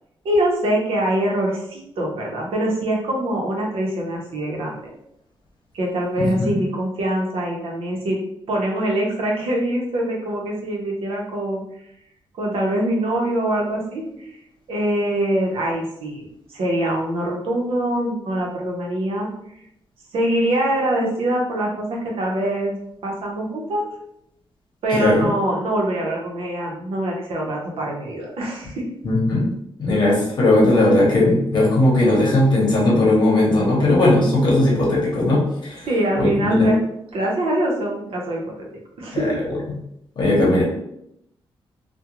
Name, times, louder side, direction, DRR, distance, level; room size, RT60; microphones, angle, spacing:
voice 1, 0.2-4.9 5.7-8.2 8.5-11.6 12.4-14.3 14.7-19.3 20.1-22.8 23.0-23.9 24.8-28.8 35.9-36.8 37.1-38.7 39.0-39.4, right 1 dB, 80° right, -2 dB, 0.7 m, -24 dB
voice 2, 6.2-6.5 24.9-25.3 29.0-29.5 29.8-35.9 36.2-36.7 39.1-39.3 40.2-40.6, left 2 dB, 50° left, -4 dB, 0.9 m, -18 dB
2.4 x 2.2 x 2.9 m, 0.77 s
wide cardioid pair, 175°, 10 cm